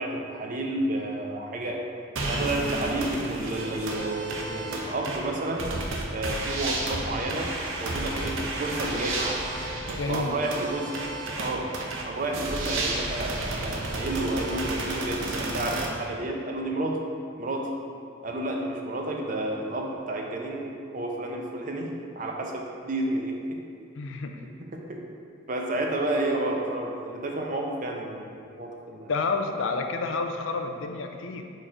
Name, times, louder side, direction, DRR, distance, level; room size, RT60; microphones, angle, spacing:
voice 1, 0.0-1.8 2.3-5.7 6.1-7.5 7.8-9.4 10.1-11.7 12.1-17.0 17.4-17.7 18.2-21.9 22.2-23.4 24.9-25.0 25.5-28.3 28.6-29.1, right 1 dB, 40° right, 1 dB, 0.6 m, -30 dB
sound 1, 2.2-15.9, right 2 dB, 75° right, 0.7 m, -32 dB
voice 2, 9.8-10.4 24.0-24.4 29.1-31.4, left 3 dB, 70° left, 4 dB, 0.5 m, -29 dB
4.6 x 4.3 x 4.9 m, 2.4 s
head